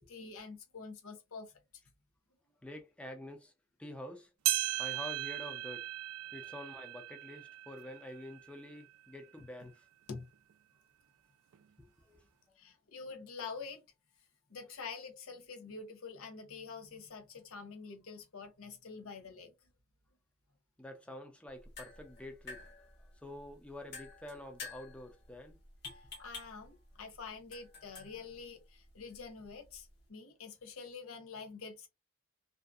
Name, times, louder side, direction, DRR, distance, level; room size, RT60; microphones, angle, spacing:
voice 1, 0.0-1.5 10.1-10.3 12.6-13.8 14.5-19.5 26.2-31.9, left 5 dB, 85° left, 0.7 m, -46 dB
voice 2, 2.6-3.5 3.8-4.3 4.8-5.9 6.3-9.9 11.8-12.6 20.8-22.7 23.2-25.6 25.8-25.9, left 1 dB, 5° left, 0.4 m, -48 dB
sound 1, 4.4-9.1 9.6-9.7 10.5-10.6 11.5-11.6, right 16 dB, 85° right, 0.3 m, -37 dB
sound 2, 21.5-30.1, left 3 dB, 55° left, 1.2 m, -52 dB
2.6 x 2.4 x 2.3 m
head